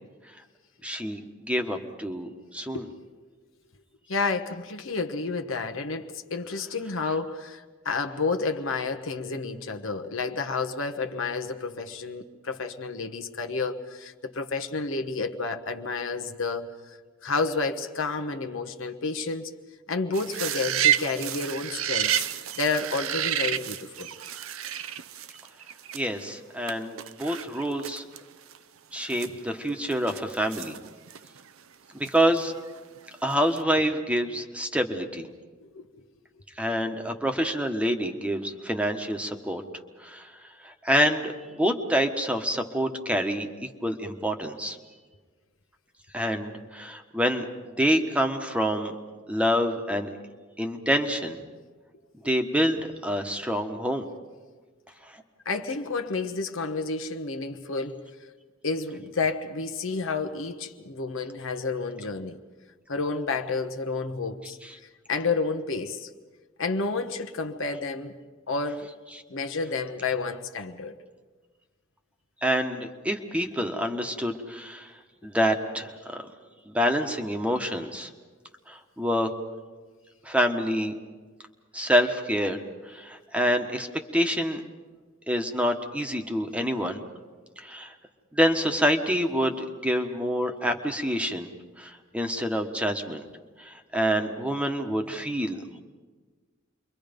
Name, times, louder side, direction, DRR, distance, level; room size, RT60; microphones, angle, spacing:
voice 1, 0.8-2.8 25.9-28.0 28.9-30.8 31.9-32.5 33.2-35.3 36.6-39.6 40.0-44.8 46.1-47.5 47.8-48.9 49.3-50.1 50.6-51.4 52.2-54.1 55.1-55.2 72.4-74.9 75.2-76.2 76.7-78.1 78.7-79.3 80.2-80.9 81.7-83.9 84.1-84.6 85.3-87.0 87.6-87.9 88.3-91.5 91.8-93.3 93.6-95.8, equal, 5° right, 1.3 m, -27 dB
voice 2, 4.1-17.0 17.2-19.5 19.9-22.2 22.6-24.1 35.6-35.9 55.4-58.0 58.6-62.4 62.9-64.6 65.1-66.1 66.6-68.2 68.5-68.9 69.3-70.9, left 4 dB, 70° left, 1.2 m, -30 dB
sound 1, 20.1-26.2 26.7-26.8 27.0-28.2 28.5-28.6 29.0-31.5 32.1-33.0 33.3-33.6, right 10 dB, 85° right, 0.7 m, -30 dB
29.0 x 23.5 x 5.3 m
head